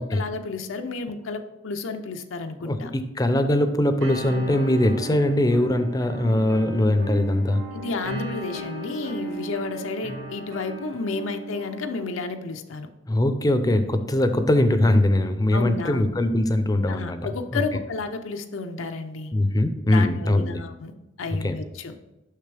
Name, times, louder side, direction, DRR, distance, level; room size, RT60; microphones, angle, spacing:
voice 1, 0.0-2.9 7.7-12.9 15.5-16.1 16.9-19.3 19.9-20.9 21.2-21.9, left 3 dB, 80° left, 6 dB, 0.6 m, -31 dB
voice 2, 2.6-7.6 13.1-17.2 17.5-17.6 19.3-20.6 21.4-21.6, left 1 dB, 20° left, 9 dB, 0.5 m, -21 dB
sound 1, 4.0-12.0, right 1 dB, 90° right, 2.3 m, -35 dB
6.6 x 6.0 x 3.3 m, 1.0 s
head